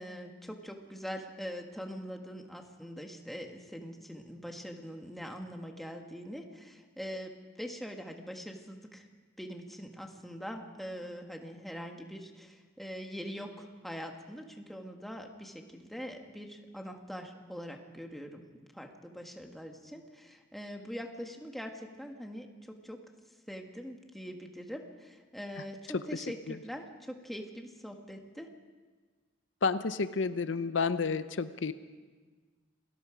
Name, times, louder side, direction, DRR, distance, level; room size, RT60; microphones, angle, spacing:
voice 1, 0.0-9.1 9.4-23.0 23.5-28.5, equal, ahead, 3 dB, 1.7 m, -43 dB
voice 2, 25.9-26.6 29.6-31.7, left 4 dB, 70° left, 12 dB, 0.6 m, -31 dB
28.0 x 18.5 x 5.1 m, 1.4 s
head